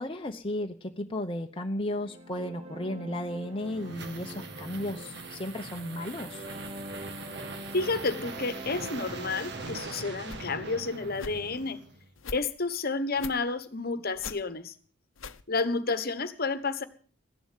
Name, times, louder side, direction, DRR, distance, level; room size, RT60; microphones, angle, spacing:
voice 1, 0.0-6.4, left 1 dB, 25° left, 3 dB, 0.9 m, -34 dB
sound 1, 1.9-9.8, right 1 dB, 30° right, 1.3 m, -44 dB
sound 2, 3.3-12.1, right 3 dB, 55° right, 2.0 m, -42 dB
voice 2, 7.7-11.8 12.3-14.7 15.5-16.8, left 3 dB, 50° left, 12 dB, 1.3 m, -30 dB
sound 3, 9.3-9.4 10.1-10.5 11.1-11.3 12.1-12.4 13.1-13.4 14.1-14.4 15.1-15.4, left 5 dB, 75° left, 0.9 m, -42 dB
15.0 x 11.0 x 7.4 m, 0.43 s
head